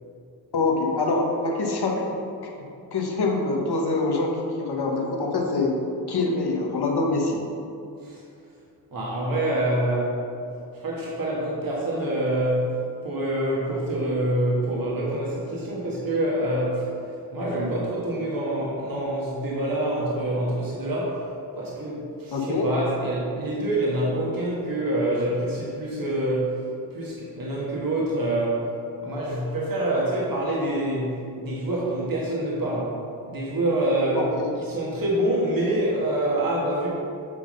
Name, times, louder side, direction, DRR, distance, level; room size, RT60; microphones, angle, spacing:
voice 1, 0.5-2.0 2.4-2.5 2.9-5.7 6.1-7.4 22.3-22.7 34.2-34.5, left 3 dB, 70° left, 0 dB, 1.3 m, -25 dB
voice 2, 8.9-10.2 10.7-16.9 17.3-21.3 21.6-28.7 29.0-33.0 33.3-36.9, right 1 dB, 55° right, -5 dB, 1.5 m, -26 dB
8.1 x 3.7 x 5.3 m, 2.6 s
cardioid pair, 70°, 41 cm